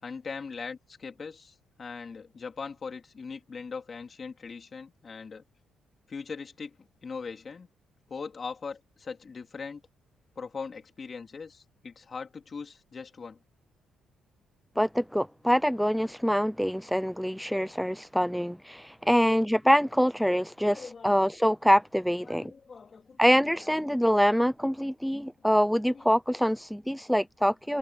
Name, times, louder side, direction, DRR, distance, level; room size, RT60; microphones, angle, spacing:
voice 1, 0.0-5.4 6.1-7.7 8.1-9.8 10.3-13.4 20.6-21.3 22.3-23.7 25.9-26.1, left 5 dB, 40° left, 3.4 m, -40 dB
voice 2, 14.8-22.5 23.2-27.8, equal, ahead, 0.7 m, -25 dB
cardioid pair, 90°, 0 cm